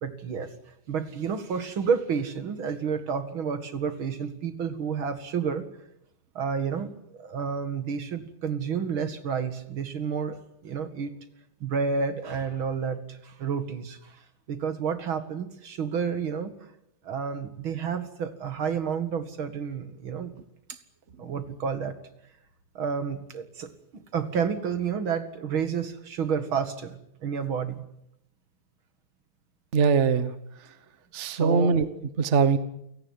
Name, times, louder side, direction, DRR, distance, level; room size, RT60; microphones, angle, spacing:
voice 1, 0.0-0.5 0.9-5.7 6.3-10.4 10.6-11.1 11.6-14.2 14.5-16.7 17.0-20.3 20.7-20.8 21.2-22.0 22.7-27.8 31.3-31.8, right 6 dB, 70° right, 11 dB, 2.8 m, -30 dB
voice 2, 29.7-30.3 31.1-31.8 32.2-32.6, right 5 dB, 40° right, 13 dB, 1.3 m, -21 dB
29.0 x 17.5 x 9.6 m, 0.78 s
omnidirectional pair, 2.4 m